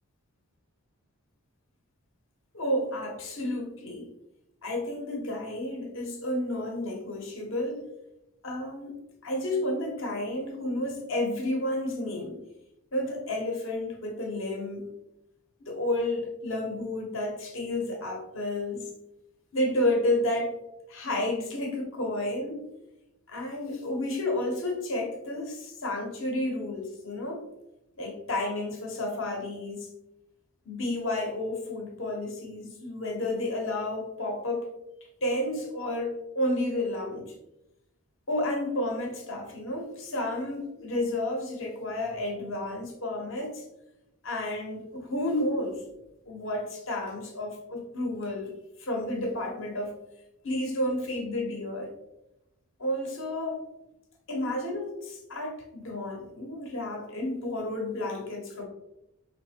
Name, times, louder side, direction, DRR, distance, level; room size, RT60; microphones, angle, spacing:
voice 1, 2.5-4.1 4.6-7.8 8.4-9.0 9.2-12.4 12.9-14.9 15.6-18.9 19.5-20.6 20.9-22.6 23.3-27.4 28.0-29.9 30.6-34.7 35.2-37.3 38.3-43.6 44.2-45.8 46.3-48.5 48.8-49.9 50.4-51.9 52.8-53.6 54.3-58.6, left 1 dB, 60° left, 1 dB, 1.1 m, -31 dB
5.1 x 3.3 x 2.8 m, 0.88 s
head